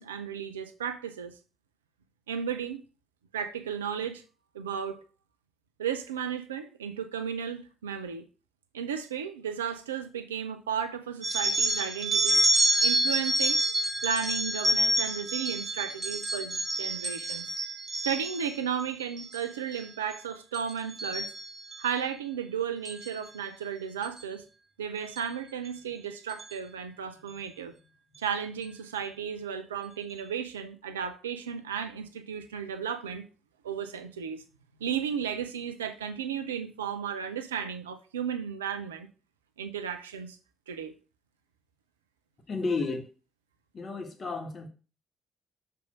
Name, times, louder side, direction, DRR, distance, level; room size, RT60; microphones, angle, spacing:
voice 1, 0.0-1.3 2.3-2.8 3.3-4.2 4.5-5.0 5.8-8.3 8.7-12.5 12.8-13.6 14.0-17.6 18.0-21.3 21.8-24.4 24.8-27.8 28.2-33.3 33.6-34.4 34.8-39.1 39.6-40.4 40.7-41.0, right 7 dB, 80° right, 0.5 m, -34 dB
sound 1, 11.2-18.5 19.0-19.4 19.7-20.1 20.5-21.9 22.8-23.1 24.0-24.2 25.2-25.3 25.6-25.7 26.3-26.5, right 1 dB, 30° right, 1.8 m, -28 dB
voice 2, 42.5-43.1 43.7-44.7, left 4 dB, 40° left, 1.6 m, -32 dB
6.2 x 3.5 x 5.8 m
figure-of-eight pair, 45°, 0 cm